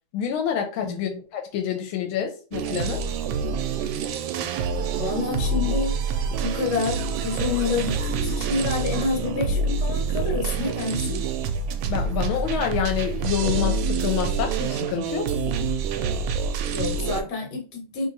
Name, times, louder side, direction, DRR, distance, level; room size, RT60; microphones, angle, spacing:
voice 1, 0.1-3.0 11.9-15.3, left 8 dB, 85° left, 1.4 m, -27 dB
voice 2, 0.8-1.2 5.0-6.0 6.4-11.2 16.6-18.1, left 4 dB, 60° left, 1.6 m, -28 dB
sound 1, 2.5-17.2, right 4 dB, 80° right, 1.3 m, -26 dB
3.1 x 2.8 x 3.9 m
omnidirectional pair, 2.2 m